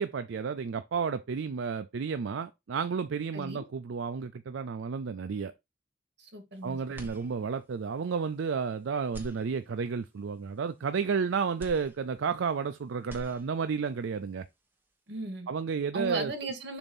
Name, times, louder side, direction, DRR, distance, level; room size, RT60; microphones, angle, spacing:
voice 1, 0.0-5.5 6.6-14.4 15.5-16.3, right 5 dB, 80° right, 0.4 m, -32 dB
voice 2, 3.3-3.6 6.2-6.8 15.1-15.5 15.9-16.8, right 2 dB, 60° right, 1.9 m, -36 dB
sound 1, 6.9-7.8 8.3-8.4 9.0-10.1 11.6-12.7 12.9-13.9, equal, 10° right, 1.2 m, -47 dB
7.1 x 2.8 x 5.3 m
head